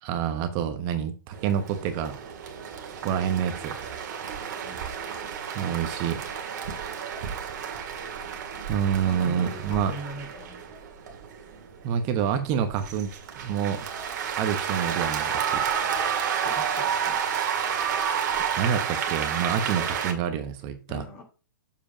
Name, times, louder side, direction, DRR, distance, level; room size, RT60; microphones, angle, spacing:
voice 1, 0.0-2.3 3.0-4.1 5.5-6.3 8.7-9.9 11.8-13.1 13.4-13.8 14.4-15.6 18.6-21.0, right 8 dB, 35° right, 1.1 m, -27 dB
sound 1, 1.3-20.1, right 7 dB, 55° right, 1.9 m, -31 dB
voice 2, 4.3-4.8 9.0-10.7 16.4-17.2 20.9-21.2, left 1 dB, 40° left, 3.1 m, -41 dB
7.2 x 5.0 x 5.0 m
hypercardioid pair, 120°, 11 cm